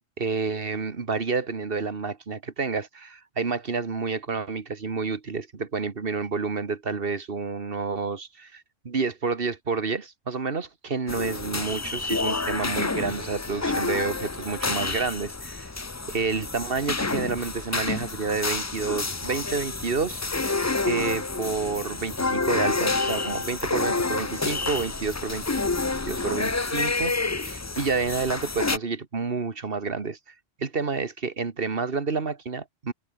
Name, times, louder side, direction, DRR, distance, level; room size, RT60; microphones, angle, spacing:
voice 1, 0.2-15.7 16.1-20.2 20.5-20.6 20.8-25.4 26.0-30.2 30.6-32.9, right 4 dB, 50° right, 1.8 m, -29 dB
sound 1, 11.1-28.8, left 3 dB, 20° left, 0.4 m, -29 dB
omnidirectional pair, 1.3 m